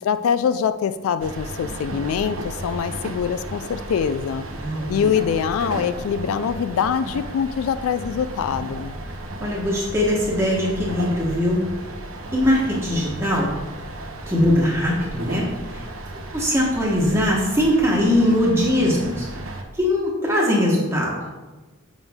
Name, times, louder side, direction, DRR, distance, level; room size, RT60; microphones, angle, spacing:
voice 1, 0.0-4.4 4.9-8.9, left 7 dB, 80° left, 12 dB, 0.3 m, -24 dB
sound 1, 1.2-19.6, right 1 dB, 80° right, 0.9 m, -34 dB
voice 2, 4.5-5.1 9.4-11.7 12.3-13.5 14.3-15.9 16.3-19.3 19.7-21.2, left 1 dB, 10° right, -4 dB, 1.1 m, -21 dB
7.0 x 6.1 x 3.6 m, 1.2 s
head